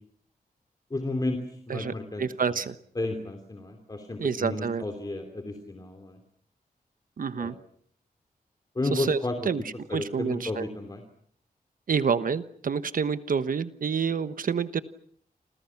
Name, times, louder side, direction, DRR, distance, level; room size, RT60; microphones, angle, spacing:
voice 1, 0.9-2.6 2.9-6.2 7.4-7.5 8.7-9.5 9.9-11.0, left 2 dB, 25° left, 4 dB, 3.1 m, -32 dB
voice 2, 1.7-2.8 4.2-4.8 7.2-7.6 8.9-9.2 9.4-9.6 9.9-10.7 11.9-14.8, right 6 dB, 65° right, 12 dB, 1.1 m, -28 dB
29.0 x 26.5 x 5.9 m, 0.63 s
wide cardioid pair, 150°, 15 cm